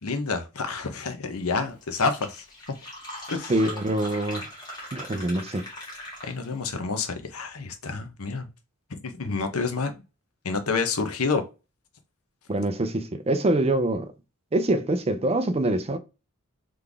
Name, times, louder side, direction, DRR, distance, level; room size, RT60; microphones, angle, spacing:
voice 1, 0.0-2.4 3.3-3.5 6.2-8.5 8.9-9.9 10.4-11.4, left 4 dB, 80° left, 0.9 m, -28 dB
Fill (with liquid), 1.5-1.6 1.8-6.6, left 1 dB, 20° left, 1.7 m, -40 dB
voice 2, 3.5-4.5 4.9-5.7 12.5-14.1 14.5-16.0, right 1 dB, 30° right, 0.5 m, -25 dB
3.9 x 3.3 x 3.4 m
head